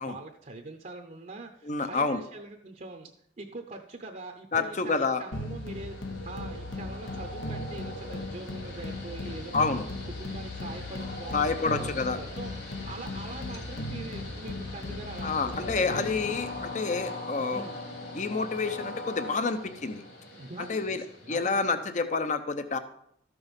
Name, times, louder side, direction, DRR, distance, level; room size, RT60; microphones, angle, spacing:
voice 1, 0.0-3.1 3.4-9.7 10.0-11.9 12.2-16.4 17.5-17.8 20.3-21.0 21.2-21.6, right 2 dB, 40° right, 4 dB, 0.7 m, -43 dB
voice 2, 1.6-2.2 4.5-5.2 9.5-9.8 11.3-12.2 15.2-17.6 18.1-20.0 20.6-22.8, left 4 dB, 40° left, 10 dB, 0.6 m, -28 dB
Train, 5.1-21.8, left 2 dB, 60° left, 3.6 m, -42 dB
sound 1, 5.3-16.8, left 2 dB, 85° left, 1.2 m, -38 dB
13.0 x 6.1 x 5.2 m, 0.71 s
head